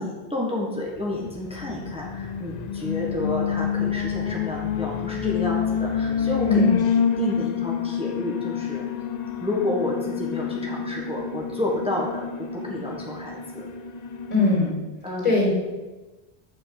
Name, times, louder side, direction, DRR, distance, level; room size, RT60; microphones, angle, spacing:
voice 1, 0.0-6.6 7.2-8.9 9.4-13.7 14.3-14.6 15.0-15.3, left 1 dB, 5° right, -3 dB, 1.4 m, -30 dB
Alarm, 1.3-14.7, left 7 dB, 50° left, 0.6 m, -28 dB
voice 2, 14.3-14.7 15.2-15.5, left 3 dB, 35° left, -5 dB, 3.3 m, -20 dB
7.1 x 5.7 x 6.7 m, 1.1 s
omnidirectional pair, 1.1 m